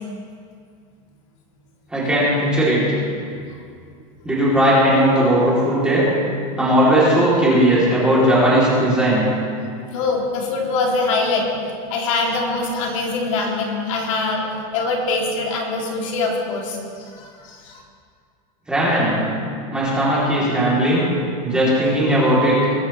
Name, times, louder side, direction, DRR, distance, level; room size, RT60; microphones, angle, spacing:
voice 1, 1.9-2.8 4.2-6.1 6.6-9.2 18.7-19.2 19.7-21.1 21.4-22.6, right 1 dB, 5° right, -8 dB, 3.0 m, -17 dB
voice 2, 9.9-11.5 11.9-14.4 14.7-17.8, left 3 dB, 65° left, -2 dB, 2.8 m, -23 dB
21.0 x 11.5 x 3.2 m, 2.3 s
supercardioid pair, 180°, 17 cm